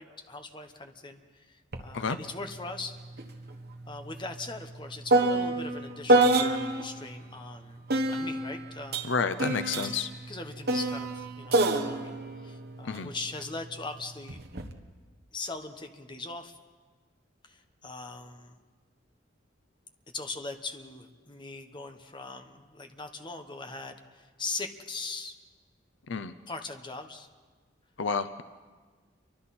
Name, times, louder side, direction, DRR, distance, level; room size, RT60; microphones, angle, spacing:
voice 1, 0.0-3.0 3.9-9.1 9.8-9.9 10.3-12.1 12.4-14.4 15.3-16.6 17.4-18.6 20.1-25.4 26.5-27.3, left 3 dB, 25° left, 6 dB, 1.3 m, -40 dB
sound 1, 1.7-1.9 2.2-7.0 7.9-13.4 14.3-14.7, right 2 dB, 55° right, 1.4 m, -27 dB
voice 2, 9.0-10.1 12.8-13.1 26.1-26.3 28.0-28.4, left 5 dB, 70° left, 11 dB, 0.7 m, -30 dB
29.5 x 24.0 x 4.3 m, 1.4 s
head